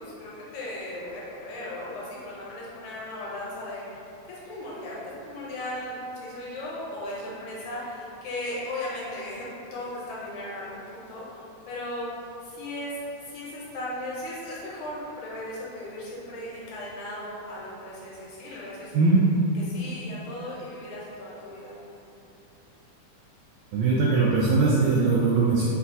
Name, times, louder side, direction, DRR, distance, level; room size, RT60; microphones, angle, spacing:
voice 1, 0.0-3.9 4.3-11.4 11.7-12.1 12.4-19.2 19.7-21.8, left 1 dB, 80° left, -6 dB, 1.8 m, -37 dB
voice 2, 18.9-19.2 23.7-25.7, right 3 dB, 80° right, -6 dB, 1.6 m, -21 dB
6.1 x 2.3 x 2.6 m, 2.8 s
omnidirectional pair, 3.6 m